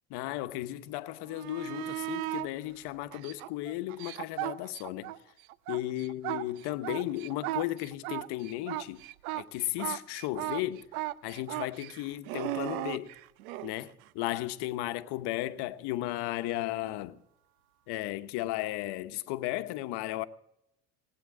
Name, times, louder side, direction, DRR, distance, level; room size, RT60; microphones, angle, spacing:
voice 1, 0.1-5.1 5.7-9.0 9.3-10.8 11.2-13.1 13.6-17.2 17.9-20.2, left 16 dB, 65° left, 1.1 m, -35 dB
sound 1, 1.3-2.5 3.1-5.2 5.5-13.7 16.5-16.6, right 16 dB, 80° right, 0.8 m, -36 dB
19.0 x 8.9 x 7.5 m
hypercardioid pair, 75°, 42 cm